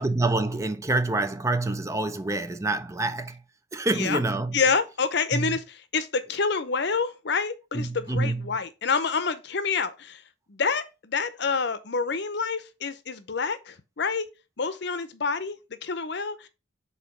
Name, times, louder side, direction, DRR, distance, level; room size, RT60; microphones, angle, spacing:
voice 1, 0.0-3.4 3.7-4.6 5.3-5.6 7.7-8.6, right 2 dB, 15° right, 0.4 m, -27 dB
voice 2, 4.5-10.2 10.5-14.3 14.6-16.5, left 5 dB, 60° left, 0.7 m, -28 dB
4.9 x 3.9 x 5.1 m
head